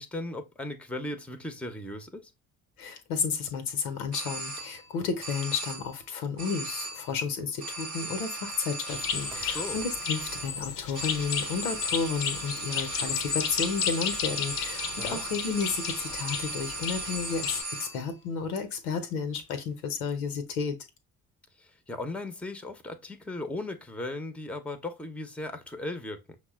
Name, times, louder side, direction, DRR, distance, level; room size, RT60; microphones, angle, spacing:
voice 1, 0.0-2.3 9.3-9.8 15.0-15.2 21.6-26.4, left 2 dB, 5° left, 0.8 m, -37 dB
voice 2, 2.8-20.8, left 5 dB, 75° left, 0.9 m, -32 dB
sound 1, 4.1-4.9 5.2-6.0 6.4-7.2 7.6-18.1, right 2 dB, 90° right, 1.0 m, -37 dB
sound 2, 8.9-17.6, left 7 dB, 50° left, 0.7 m, -33 dB
5.9 x 2.1 x 3.5 m
figure-of-eight pair, 40°, 45 cm